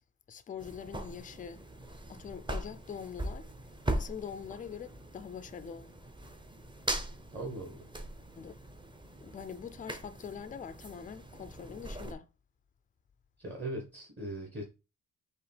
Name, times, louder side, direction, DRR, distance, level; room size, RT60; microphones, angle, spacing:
voice 1, 0.3-1.6 2.1-3.5 3.9-5.9 8.4-8.6 9.2-12.3, left 7 dB, 25° left, 0.3 m, -43 dB
sound 1, 0.6-12.1, right 1 dB, 15° right, 0.6 m, -40 dB
voice 2, 7.3-7.9 13.4-14.6, right 1 dB, 30° right, 1.2 m, -39 dB
4.9 x 2.9 x 3.3 m
cardioid pair, 110°, 32 cm